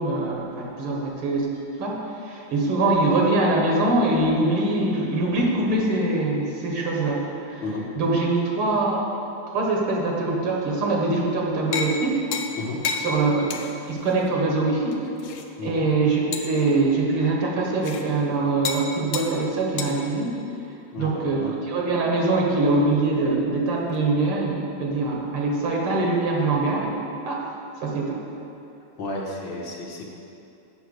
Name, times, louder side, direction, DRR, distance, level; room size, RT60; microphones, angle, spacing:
voice 1, 0.0-1.5 1.8-7.6 8.0-9.0 9.5-12.3 13.0-13.5 13.9-15.0 15.6-20.3 21.0-27.0 27.3-27.5 27.8-28.2, right 2 dB, 85° right, -1 dB, 2.3 m, -23 dB
sound 1, 11.7-12.0 12.3-12.6 12.8-13.1 13.5-13.7 14.1-14.2 14.9-15.5 16.3-16.6 17.8-18.0 18.6-18.9 19.1-19.3 19.8-19.9, left 6 dB, 85° left, 1.5 m, -29 dB
voice 2, 20.9-21.5 29.0-30.2, left 2 dB, 65° left, -2 dB, 1.7 m, -32 dB
8.0 x 5.8 x 6.3 m, 2.7 s
omnidirectional pair, 2.4 m